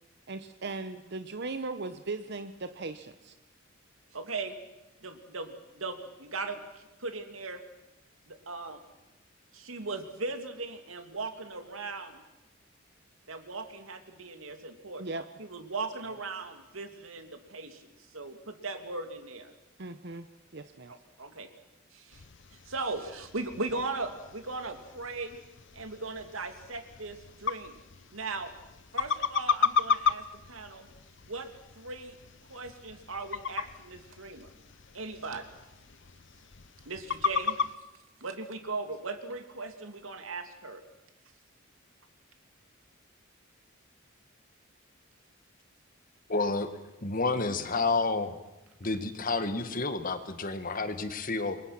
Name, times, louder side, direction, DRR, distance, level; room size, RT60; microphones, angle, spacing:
voice 1, 0.3-3.3 15.0-15.2 19.8-20.3 20.5-20.9, right 3 dB, 55° right, 10 dB, 0.9 m, -38 dB
voice 2, 4.1-4.6 5.0-7.6 8.3-8.8 9.5-12.2 13.3-15.0 15.4-19.5 20.9-21.5 21.9-22.3 22.7-25.4 25.7-27.8 28.1-28.5 28.9-30.9 31.2-31.5 31.8-32.2 32.5-34.5 34.9-35.5 36.8-37.6 38.2-40.8, right 3 dB, 80° right, 7 dB, 2.7 m, -38 dB
sound 1, 22.1-37.7, left 6 dB, 60° left, 0.8 m, -35 dB
voice 3, 46.3-46.7 47.0-48.4 48.8-51.6, left 3 dB, 40° left, 10 dB, 1.8 m, -30 dB
28.5 x 23.0 x 6.1 m, 0.99 s
head